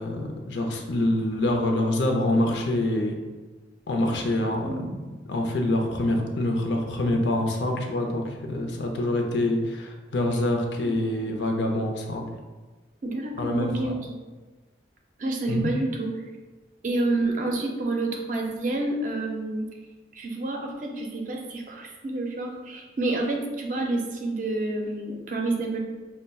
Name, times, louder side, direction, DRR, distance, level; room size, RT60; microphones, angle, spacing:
voice 1, 0.0-3.1 3.9-5.0 5.3-12.3 13.4-13.9 15.5-15.7, left 1 dB, 80° left, 2 dB, 0.5 m, -26 dB
voice 2, 13.0-14.2 15.2-16.1 16.8-19.7 20.1-25.8, right 2 dB, 45° right, 1 dB, 0.4 m, -28 dB
5.3 x 2.1 x 2.2 m, 1.2 s
head